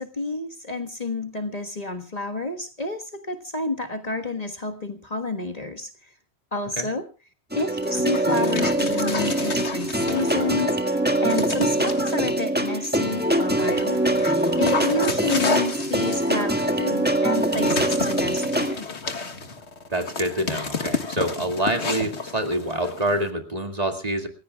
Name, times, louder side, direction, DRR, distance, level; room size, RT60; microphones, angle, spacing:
voice 1, 0.0-6.1 6.5-7.1 7.5-14.0 14.6-18.9, left 2 dB, 35° left, 5 dB, 1.5 m, -30 dB
sound 1, 7.5-18.7, right 1 dB, 10° right, 1.7 m, -23 dB
Dog, 7.8-10.7 11.3-12.3 12.9-23.3, left 4 dB, 90° left, 2.0 m, -32 dB
voice 2, 19.9-24.3, right 1 dB, 35° right, 4 dB, 2.3 m, -26 dB
28.5 x 15.5 x 2.3 m, 0.31 s
omnidirectional pair, 1.1 m